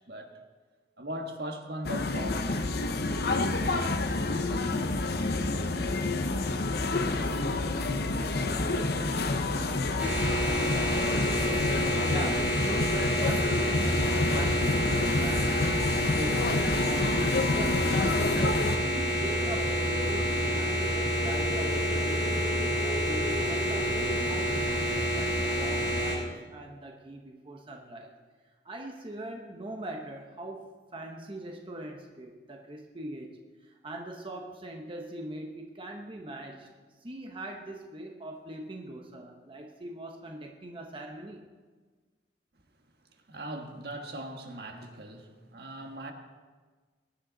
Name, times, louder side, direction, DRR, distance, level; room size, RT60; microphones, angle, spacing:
voice 1, 1.0-3.9 4.5-4.8 43.3-46.1, right 1 dB, 65° right, 1.5 m, -40 dB
sound 1, 1.8-18.8, left 3 dB, 60° left, 0.8 m, -29 dB
sound 2, 10.0-26.1, equal, 5° right, 5.0 m, -28 dB
voice 2, 12.1-16.5 16.8-22.3 22.8-28.1 28.6-36.7 37.0-41.4, right 1 dB, 30° right, 1.1 m, -41 dB
sound 3, 19.2-24.1, left 2 dB, 35° left, 1.4 m, -40 dB
21.0 x 10.0 x 4.0 m
head